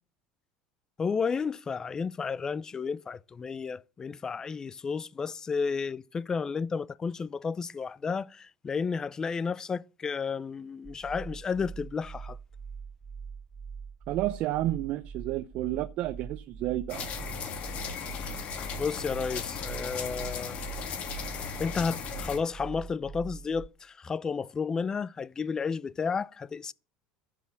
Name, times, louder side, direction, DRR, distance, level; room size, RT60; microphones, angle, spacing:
voice 1, 1.0-12.4 18.8-20.6 21.6-26.7, left 5 dB, 25° left, 0.5 m, -32 dB
sound 1, 10.8-23.7, right 6 dB, 35° right, 0.9 m, -43 dB
voice 2, 14.1-17.1, right 15 dB, 55° right, 0.7 m, -31 dB
sound 2, 16.9-22.4, left 6 dB, 50° left, 2.7 m, -37 dB
10.5 x 7.5 x 8.6 m
supercardioid pair, 115°, 3 cm